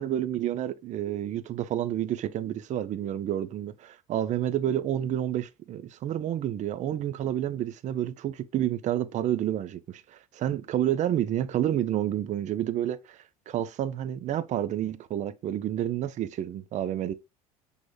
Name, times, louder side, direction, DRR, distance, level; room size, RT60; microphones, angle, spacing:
voice 1, 0.0-17.1, right 11 dB, 40° right, 0.5 m, -29 dB
6.1 x 3.5 x 2.2 m
hypercardioid pair, 70°, 19 cm